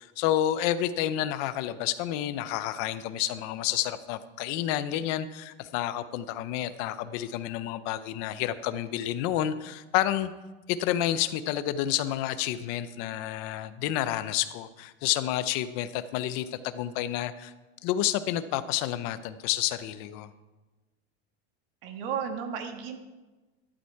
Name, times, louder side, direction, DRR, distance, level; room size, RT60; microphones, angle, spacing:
voice 1, 0.0-10.3 10.7-17.5 17.8-20.3, left 12 dB, 35° left, 13 dB, 0.6 m, -29 dB
voice 2, 21.8-23.0, right 7 dB, 55° right, 5 dB, 1.8 m, -33 dB
13.0 x 11.5 x 4.6 m, 1.2 s
supercardioid pair, 175°, 33 cm